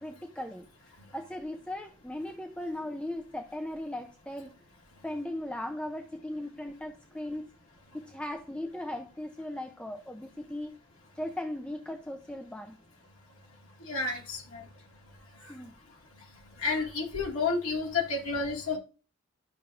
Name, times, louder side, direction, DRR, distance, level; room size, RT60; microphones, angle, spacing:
voice 1, 0.0-4.5 5.0-7.5 7.9-10.7 11.1-12.8 15.5-15.7, left 1 dB, 5° left, 5 dB, 0.5 m, -38 dB
voice 2, 13.9-14.7 16.6-18.8, left 4 dB, 80° left, -1 dB, 1.9 m, -30 dB
10.5 x 6.1 x 2.5 m, 0.35 s
head